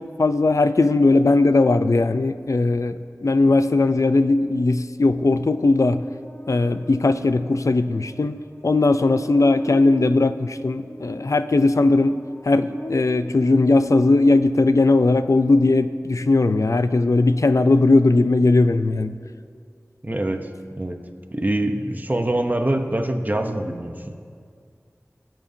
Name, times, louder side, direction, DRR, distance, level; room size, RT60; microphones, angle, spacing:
voice 1, 0.0-6.0 6.5-12.2 12.4-19.2, left 2 dB, 70° left, 11 dB, 0.4 m, -18 dB
Buzz, 5.4-14.9, equal, 40° left, 0.7 m, -40 dB
voice 2, 20.0-21.0 21.3-24.2, right 1 dB, 30° right, 5 dB, 0.8 m, -25 dB
21.5 x 7.3 x 2.7 m, 2.2 s
wide cardioid pair, 45°, 6 cm